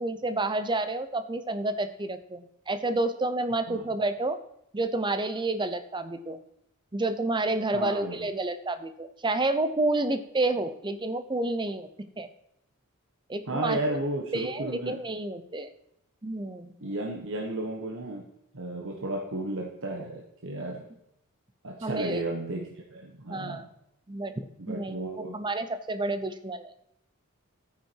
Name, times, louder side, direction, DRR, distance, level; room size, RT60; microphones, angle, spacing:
voice 1, 0.0-4.4 4.7-6.4 6.9-11.9 12.2-12.3 13.3-14.0 14.3-15.7 16.2-16.8 21.8-22.2 23.3-23.6 24.1-26.7, right 2 dB, 20° right, 10 dB, 0.8 m, -30 dB
voice 2, 7.7-8.3 13.5-15.1 16.8-18.3 18.5-20.8 21.6-23.7 24.6-25.4, right 2 dB, 60° right, 0 dB, 1.4 m, -33 dB
12.5 x 9.4 x 4.6 m, 0.80 s
head